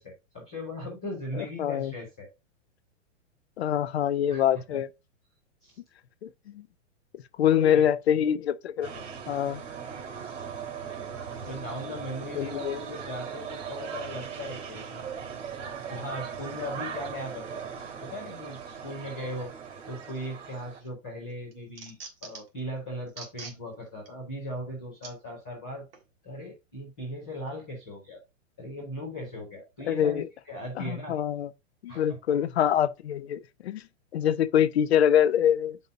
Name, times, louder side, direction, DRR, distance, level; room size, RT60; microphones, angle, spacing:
voice 1, 0.0-2.3 4.3-4.8 5.6-5.8 7.4-7.9 11.5-15.1 15.9-17.6 18.0-19.5 19.9-25.8 26.2-28.2 28.6-31.2 31.9-32.2, left 1 dB, 5° left, 0.4 m, -38 dB
voice 2, 1.4-1.9 3.6-4.9 6.2-6.3 6.5-6.6 7.4-8.9 9.3-9.6 12.4-12.8 29.9-30.2 30.9-31.5 31.8-33.8 34.1-35.8, left 9 dB, 55° left, 0.5 m, -25 dB
sound 1, 8.8-20.8, right 7 dB, 75° right, 2.5 m, -39 dB
sound 2, 20.5-20.9 21.3-22.6 23.1-23.6 24.1-24.2 25.0-25.1 25.9-26.1, right 5 dB, 50° right, 1.7 m, -44 dB
8.0 x 5.3 x 2.5 m
hypercardioid pair, 180°, 38 cm